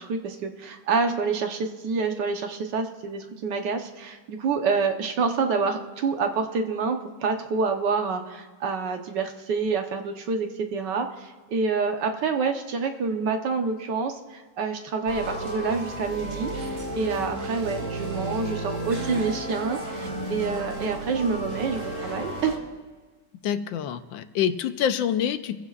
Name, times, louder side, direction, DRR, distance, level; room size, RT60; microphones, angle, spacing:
voice 1, 0.0-16.5 16.9-22.5, right 4 dB, 70° right, 5 dB, 1.6 m, -27 dB
sound 1, 15.1-22.6, right 1 dB, 45° right, 2.2 m, -33 dB
voice 2, 23.4-25.6, left 9 dB, 90° left, 11 dB, 1.4 m, -26 dB
26.5 x 15.5 x 2.4 m, 1.3 s
omnidirectional pair, 2.0 m